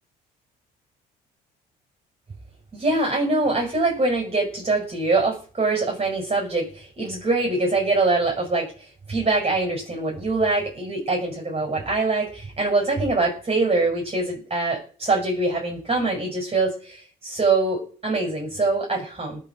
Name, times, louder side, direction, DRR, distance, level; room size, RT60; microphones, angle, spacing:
voice 1, 2.7-19.4, right 3 dB, 30° right, 1 dB, 6.8 m, -24 dB
18.5 x 6.4 x 7.7 m, 0.41 s
hypercardioid pair, 60°, 21 cm